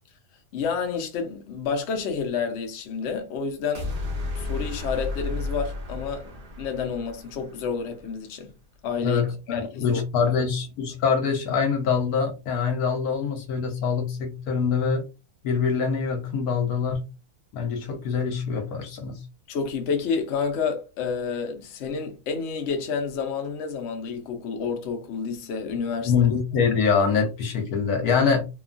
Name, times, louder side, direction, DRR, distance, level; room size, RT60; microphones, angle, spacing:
voice 1, 0.5-3.9 4.3-8.5 8.8-9.2 9.5-10.3 19.5-26.1, left 5 dB, 60° left, 0.8 m, -29 dB
sound 1, 3.7-8.0, left 2 dB, 45° right, 0.9 m, -33 dB
voice 2, 9.0-15.0 15.4-17.1 17.5-19.2 26.0-28.4, left 6 dB, 80° left, 1.3 m, -24 dB
3.0 x 2.3 x 2.4 m
omnidirectional pair, 1.6 m